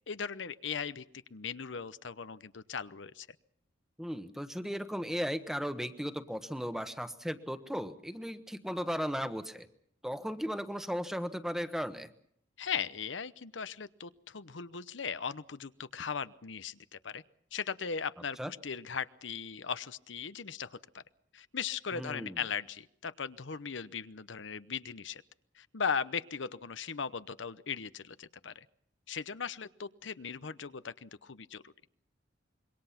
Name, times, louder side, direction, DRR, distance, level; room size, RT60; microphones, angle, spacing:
voice 1, 0.1-1.0 1.3-3.3 12.6-17.2 17.5-21.0 21.3-25.2 25.5-28.7 29.1-31.7, left 6 dB, 80° left, 14 dB, 0.8 m, -38 dB
voice 2, 4.0-9.7 10.0-12.1 18.4-18.5 21.9-22.4, equal, ahead, 10 dB, 1.2 m, -36 dB
26.0 x 23.0 x 5.8 m, 0.67 s
head